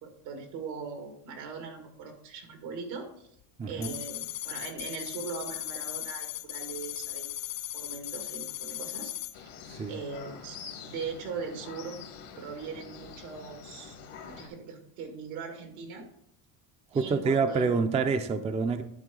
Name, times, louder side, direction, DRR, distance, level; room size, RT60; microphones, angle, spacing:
voice 1, 0.0-3.3 3.7-7.3 7.7-9.5 9.9-12.1 12.4-14.0 14.2-16.1 16.9-17.8, right 5 dB, 85° right, 2.1 m, -40 dB
voice 2, 3.6-3.9 9.7-9.9 16.9-18.8, right 4 dB, 15° right, 0.4 m, -27 dB
sound 1, 3.8-9.3, left 14 dB, 45° left, 0.6 m, -37 dB
sound 2, 9.3-14.5, left 6 dB, 90° left, 1.8 m, -46 dB
11.0 x 4.6 x 3.7 m
supercardioid pair, 105°, 45 cm